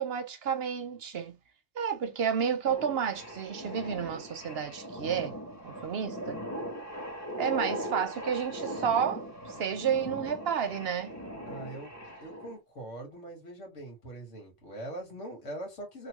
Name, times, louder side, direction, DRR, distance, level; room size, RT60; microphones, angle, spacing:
voice 1, 0.0-1.4 1.7-5.4 5.6-6.4 7.4-11.2, right 7 dB, 60° right, 0.8 m, -31 dB
sound 1, 2.7-12.6, equal, 15° left, 0.8 m, -39 dB
voice 2, 11.5-11.9 12.2-16.1, right 1 dB, 80° left, 1.9 m, -42 dB
3.2 x 2.6 x 2.9 m
omnidirectional pair, 1.2 m